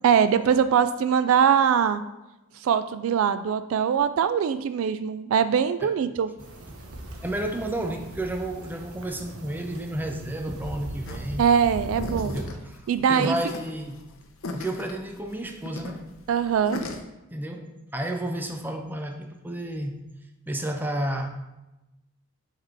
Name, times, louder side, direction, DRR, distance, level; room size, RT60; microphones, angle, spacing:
voice 1, 0.0-2.0 2.6-6.3 11.4-12.4 12.9-13.3 16.3-16.8, right 7 dB, 70° right, 13 dB, 0.3 m, -22 dB
sound 1, 6.4-12.4, right 1 dB, 90° right, 0.9 m, -39 dB
voice 2, 7.2-11.5 12.2-12.8 13.1-14.0 14.5-16.1 17.3-20.0 20.5-21.3, right 1 dB, 10° right, 4 dB, 0.5 m, -31 dB
sound 2, 11.1-17.0, left 2 dB, 70° left, 0.7 m, -37 dB
5.5 x 3.7 x 4.6 m, 0.99 s
head